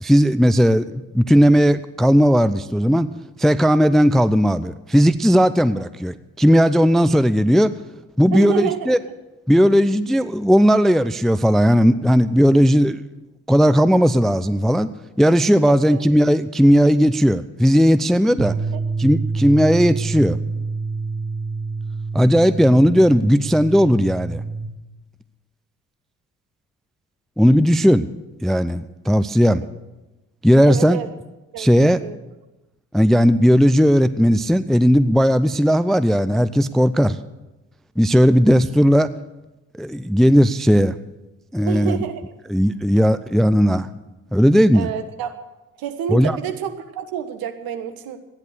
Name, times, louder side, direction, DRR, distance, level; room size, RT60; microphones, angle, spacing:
voice 1, 0.0-3.1 3.4-7.7 8.2-9.0 9.5-13.0 13.5-14.9 15.2-18.5 19.0-20.4 22.1-24.4 27.4-28.1 28.4-29.6 30.4-31.0 31.6-32.0 32.9-37.2 38.0-39.1 39.8-41.0 41.5-42.0 42.5-43.9 44.3-44.9 46.1-46.4, equal, ahead, 14 dB, 0.5 m, -16 dB
voice 2, 8.3-8.9 15.7-16.0 29.5-29.6 30.6-31.1 31.5-32.2 41.7-42.2 44.7-45.4 45.8-48.2, right 9 dB, 60° right, 7 dB, 1.5 m, -28 dB
sound 1, 18.4-24.6, right 4 dB, 15° right, 3.0 m, -27 dB
14.5 x 10.5 x 6.6 m, 1.0 s
hypercardioid pair, 50°, 40 cm